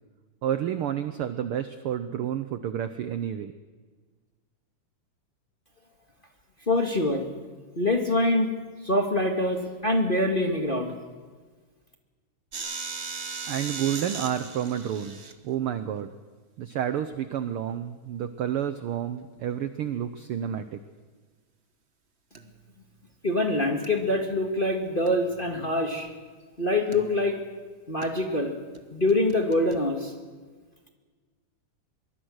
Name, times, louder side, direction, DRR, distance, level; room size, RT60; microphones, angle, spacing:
voice 1, 0.4-3.5 13.5-16.1 16.6-20.8, right 10 dB, 75° right, 10 dB, 1.3 m, -30 dB
voice 2, 6.7-7.3 7.7-8.5 8.8-10.9 23.2-26.1 26.6-27.4 27.9-28.5 28.9-30.1, left 1 dB, 25° left, 3 dB, 1.4 m, -25 dB
sound 1, 12.5-15.3 19.3-19.5 22.3-22.6 23.8-23.9 24.3-24.5 25.1-26.0 26.9-27.5 28.0-28.1 28.7-28.8 29.1-29.8, right 5 dB, 50° right, 0.7 m, -38 dB
24.0 x 22.5 x 6.4 m, 1.4 s
omnidirectional pair, 3.5 m